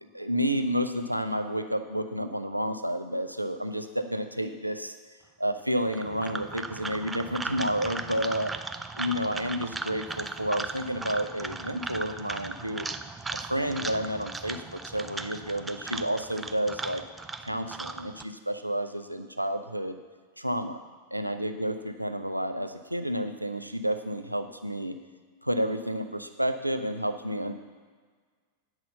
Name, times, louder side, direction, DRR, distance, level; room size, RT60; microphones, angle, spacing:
voice 1, 0.1-4.9 5.4-8.5 9.0-12.9 13.5-17.0 17.4-20.0 20.4-20.8 21.1-25.0 25.4-27.5, equal, 90° right, 8 dB, 0.6 m, -30 dB
sound 1, 5.8-18.2, right 3 dB, 10° right, 0.4 m, -37 dB
9.0 x 6.1 x 6.8 m, 1.5 s
figure-of-eight pair, 90°, 0 cm